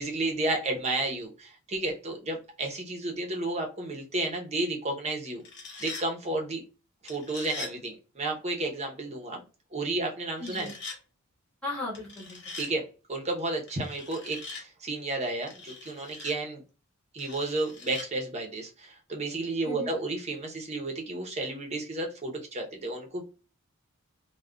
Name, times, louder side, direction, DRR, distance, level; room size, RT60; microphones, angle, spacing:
voice 1, 0.0-5.4 5.8-6.6 7.0-9.4 9.7-10.7 12.6-16.6 17.1-23.3, right 2 dB, 30° right, 1 dB, 0.8 m, -32 dB
sound 1, 5.3-6.1 7.1-7.7 10.4-11.0 11.9-12.7 13.7-14.6 15.5-16.3 17.2-18.1, left 3 dB, 50° left, 0.8 m, -42 dB
voice 2, 10.4-10.7 11.6-12.4 19.6-19.9, left 2 dB, 5° left, -8 dB, 1.3 m, -36 dB
3.6 x 2.2 x 2.3 m, 0.33 s
head